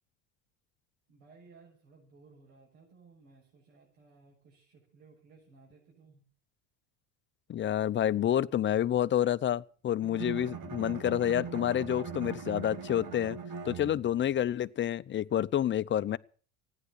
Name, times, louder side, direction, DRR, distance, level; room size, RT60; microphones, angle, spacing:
voice 1, 1.1-6.2, right 4 dB, 80° right, 6.8 m, -59 dB
voice 2, 7.5-13.4 13.7-16.2, left 11 dB, 30° left, 0.6 m, -29 dB
Bowed string instrument, 10.0-14.3, right 6 dB, 55° right, 2.1 m, -40 dB
15.0 x 9.9 x 8.0 m
hypercardioid pair, 85°, 38 cm